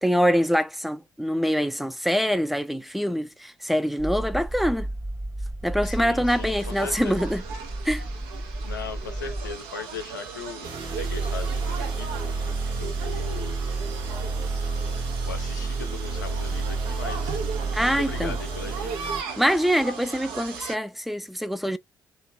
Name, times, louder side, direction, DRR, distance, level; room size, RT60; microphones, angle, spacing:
voice 1, 0.0-4.9 5.6-7.4 7.8-8.0 17.7-18.4 19.4-21.8, equal, ahead, 0.6 m, -24 dB
sound 1, 4.0-9.6, right 1 dB, 25° right, 1.2 m, -33 dB
voice 2, 5.8-7.2 8.6-10.7 11.0-12.1 12.8-13.6 15.2-17.4 17.8-19.2, left 5 dB, 85° left, 0.6 m, -38 dB
sound 2, 6.3-20.8, right 5 dB, 70° right, 1.0 m, -38 dB
sound 3, 10.6-19.2, right 3 dB, 50° right, 1.4 m, -29 dB
3.0 x 2.7 x 3.5 m
figure-of-eight pair, 45°, 10 cm